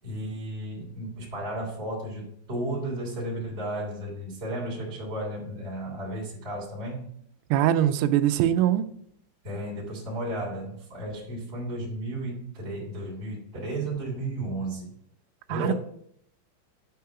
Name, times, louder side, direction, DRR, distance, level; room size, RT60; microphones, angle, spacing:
voice 1, 0.0-7.1 9.4-14.9 15.5-15.7, right 1 dB, 20° right, 2.2 m, -33 dB
voice 2, 7.5-8.9 15.5-15.7, right 11 dB, 85° right, 3.3 m, -22 dB
10.0 x 4.7 x 6.7 m
omnidirectional pair, 5.8 m